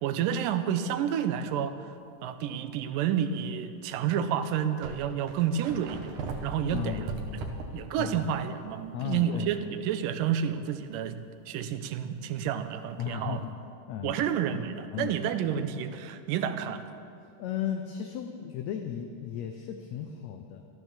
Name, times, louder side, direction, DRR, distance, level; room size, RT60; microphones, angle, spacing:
voice 1, 0.0-1.8 2.2-6.1 6.4-7.1 7.7-11.2 11.5-13.4 14.0-16.8, right 8 dB, 85° right, 10 dB, 2.4 m, -30 dB
sound 1, 2.3-2.5 3.2-3.3 4.2-4.3 4.5-8.5 8.8-8.9 12.5-12.6, right 3 dB, 70° right, 2.6 m, -39 dB
voice 2, 6.7-7.5 8.0-8.3 8.9-9.6 13.0-13.4 13.9-14.1 14.9-15.2 17.4-20.6, left 9 dB, 75° left, 6 dB, 1.8 m, -35 dB
14.0 x 12.5 x 7.3 m, 2.6 s
omnidirectional pair, 3.8 m